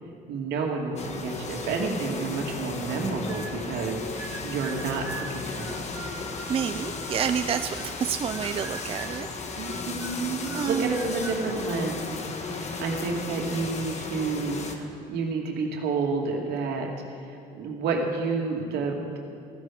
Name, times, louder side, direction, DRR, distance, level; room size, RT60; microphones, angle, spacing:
voice 1, 0.3-5.9 9.6-16.9 17.2-19.2, right 4 dB, 75° right, 0 dB, 2.5 m, -30 dB
sound 1, 1.0-14.8, left 4 dB, 40° left, 1.5 m, -35 dB
sound 2, 3.3-3.9 4.2-8.0 8.3-9.3 9.6-11.4, right 3 dB, 15° right, 1.7 m, -42 dB
voice 2, 6.5-9.3 10.5-10.9, right 8 dB, 35° right, 9 dB, 0.5 m, -29 dB
16.0 x 15.0 x 5.0 m, 2.4 s
cardioid pair, 110°, 17 cm